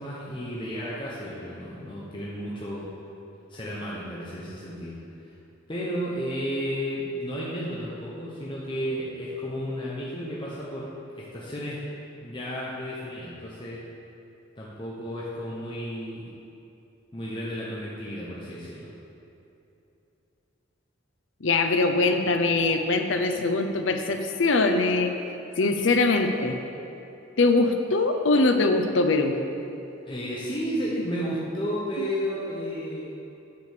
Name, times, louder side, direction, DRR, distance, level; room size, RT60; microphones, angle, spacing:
voice 1, 0.0-2.9 3.5-5.0 5.2-5.3 5.7-11.8 12.2-13.8 14.6-16.3 17.1-18.9 30.1-33.1, equal, 25° left, -6 dB, 0.9 m, -33 dB
voice 2, 21.4-25.1 25.6-26.6 27.4-29.4 32.0-32.1, left 3 dB, 75° left, 6 dB, 0.7 m, -22 dB
9.2 x 5.1 x 6.7 m, 2.8 s
head